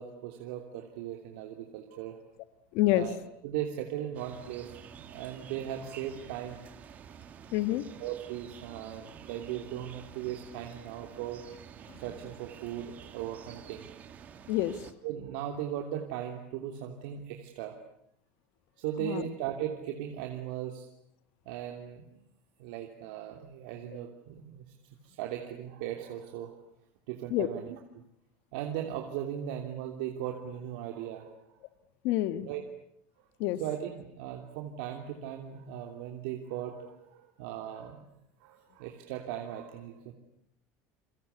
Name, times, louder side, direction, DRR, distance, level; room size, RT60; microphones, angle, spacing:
voice 1, 0.0-2.2 2.9-3.2 3.4-6.6 8.0-11.5 12.0-13.9 15.0-17.7 18.8-20.9 21.4-22.2 22.6-24.6 25.0-26.6 27.1-27.8 28.5-31.4 32.4-32.6 33.6-38.0 38.4-40.1, right 10 dB, 80° right, 3 dB, 3.1 m, -38 dB
voice 2, 2.7-3.1 7.5-7.8 14.5-14.8 19.0-19.2 27.3-27.5 32.0-32.5 33.4-33.6, left 15 dB, 60° left, 13 dB, 1.7 m, -27 dB
sound 1, 4.1-14.9, right 8 dB, 35° right, 2.3 m, -50 dB
30.0 x 24.0 x 8.3 m, 0.70 s
cardioid pair, 165°, 5 cm